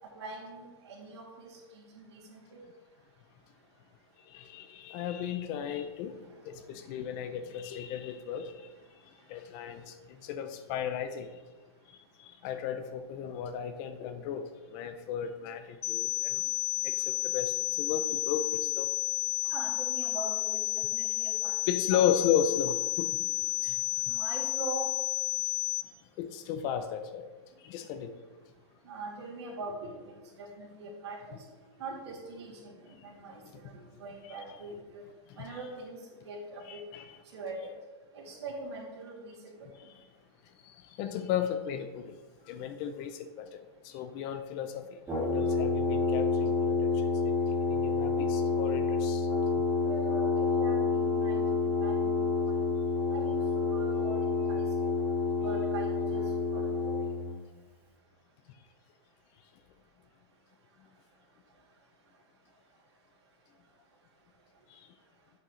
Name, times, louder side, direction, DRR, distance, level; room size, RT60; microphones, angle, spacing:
voice 1, 0.0-2.6 19.4-22.0 23.6-23.7 24.0-24.9 28.8-31.4 31.8-32.8 33.0-35.0 35.4-36.0 36.2-36.8 37.3-37.7 38.1-39.7 49.7-52.1 52.4-52.7 53.1-54.2 54.5-54.6 55.4-57.1, right 3 dB, 80° right, -3 dB, 2.7 m, -42 dB
voice 2, 4.3-6.2 6.4-8.7 9.3-11.3 12.2-14.4 14.7-16.4 16.8-18.9 21.7-23.1 23.6-23.7 26.2-27.3 27.6-28.1 33.3-33.5 34.2-34.3 35.3-35.4 36.7-37.1 39.8-39.9 40.6-42.1 42.5-49.3 64.7-64.9, left 8 dB, 30° left, 9 dB, 0.4 m, -35 dB
sound 1, 15.8-25.8, left 22 dB, 85° left, 0.6 m, -31 dB
Brass instrument, 45.1-57.3, left 4 dB, 15° right, 2.1 m, -28 dB
7.9 x 7.6 x 3.2 m, 1.3 s
supercardioid pair, 160°, 14 cm